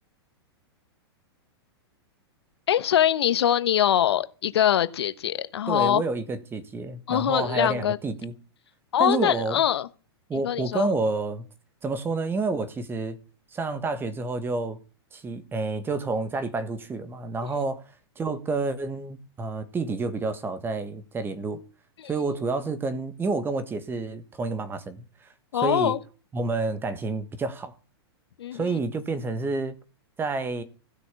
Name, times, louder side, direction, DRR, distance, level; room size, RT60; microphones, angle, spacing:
voice 1, 2.7-6.0 7.1-8.0 8.9-9.9 10.3-10.9 22.0-22.1 25.5-26.0 28.4-28.8, left 10 dB, 75° left, 1.1 m, -23 dB
voice 2, 5.7-8.3 9.0-9.6 10.3-11.5 11.8-13.2 13.5-14.8 15.1-17.8 18.2-21.6 22.1-25.0 25.6-26.0 26.3-27.7 28.5-29.8 30.2-30.6, right 3 dB, 15° right, 1.6 m, -29 dB
15.5 x 6.3 x 8.4 m
hypercardioid pair, 125°, 14 cm